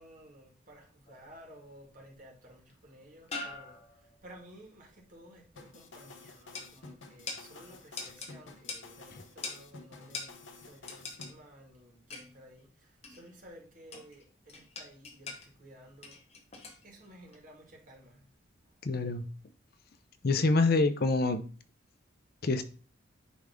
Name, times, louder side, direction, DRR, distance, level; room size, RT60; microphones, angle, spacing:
voice 1, 0.0-16.2 16.8-18.2, equal, 45° right, 2.2 m, -54 dB
sound 1, 1.1-1.6 2.7-2.8 3.3-4.2 6.5-6.7 7.3-7.5 8.0-8.3 8.7-8.9 9.4-9.6 10.1-10.3 10.9-11.3 12.1-12.4 13.0-13.3 13.9-14.2 14.5-15.5 16.0-16.8 17.3-17.4, left 3 dB, 35° left, 1.4 m, -42 dB
sound 2, 5.6-11.3, left 3 dB, 70° left, 1.0 m, -51 dB
voice 2, 18.8-19.2 20.2-21.4 22.4-22.6, left 3 dB, 50° left, 0.6 m, -26 dB
10.0 x 3.5 x 3.7 m
head